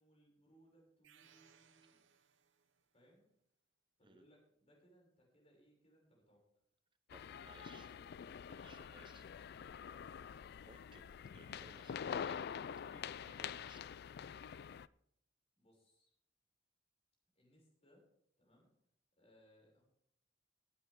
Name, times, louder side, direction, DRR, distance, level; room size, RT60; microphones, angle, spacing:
voice 1, 0.0-2.0 2.9-3.3 4.0-6.4 7.2-8.1 8.4-9.3 9.8-10.0 15.6-16.1 17.3-18.1 18.4-18.8 19.2-19.8, equal, 35° left, -1 dB, 6.4 m, -69 dB
sound 1, 1.0-2.9, right 8 dB, 90° right, 0.9 m, -68 dB
sound 2, 7.1-14.9, left 7 dB, 60° left, 0.4 m, -46 dB
voice 2, 7.1-7.9 8.5-9.2 10.6-13.8, right 3 dB, 25° right, 10 dB, 0.6 m, -63 dB
18.0 x 9.6 x 3.6 m, 0.73 s
head